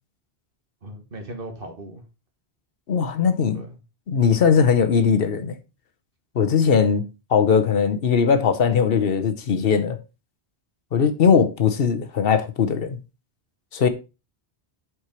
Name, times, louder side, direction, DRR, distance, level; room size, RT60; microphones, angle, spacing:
voice 1, 0.8-2.0 3.5-3.8, right 1 dB, 60° right, 1.6 m, -37 dB
voice 2, 2.9-3.6 4.1-5.6 6.3-10.0 10.9-13.0 13.7-13.9, left 6 dB, 70° left, 1.0 m, -20 dB
7.8 x 4.9 x 4.3 m
omnidirectional pair, 1.0 m